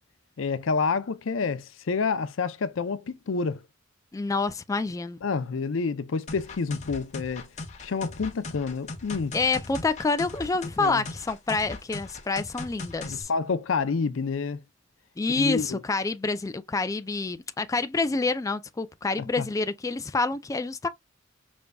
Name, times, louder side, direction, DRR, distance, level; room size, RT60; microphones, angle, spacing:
voice 1, 0.4-3.6 5.2-7.5 7.8-9.4 10.8-11.0 13.0-14.6 15.3-15.8 19.2-19.5, left 4 dB, 70° left, 0.5 m, -28 dB
voice 2, 4.1-5.2 9.3-13.3 15.2-20.9, left 3 dB, 15° left, 0.3 m, -27 dB
sound 1, 6.3-13.2, left 2 dB, 35° left, 1.0 m, -39 dB
5.2 x 3.4 x 2.2 m
head